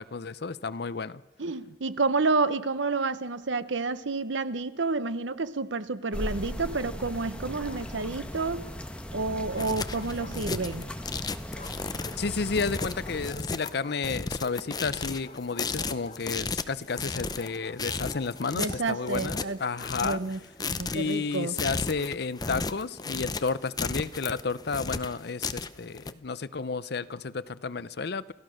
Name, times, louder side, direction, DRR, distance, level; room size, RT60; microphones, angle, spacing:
voice 1, 0.0-1.2 12.2-20.2 20.9-28.3, left 4 dB, 60° left, 0.7 m, -32 dB
voice 2, 1.4-8.7 9.1-10.9 18.5-19.6 20.0-20.4 20.7-21.6, right 3 dB, 90° right, 1.0 m, -29 dB
sound 1, 6.1-13.3, equal, 5° left, 1.4 m, -38 dB
Bark, 7.4-8.3 9.2-10.8 11.5-19.7, left 3 dB, 40° left, 1.0 m, -48 dB
sound 2, 9.6-26.1, left 4 dB, 20° left, 0.7 m, -34 dB
29.0 x 14.0 x 6.5 m
head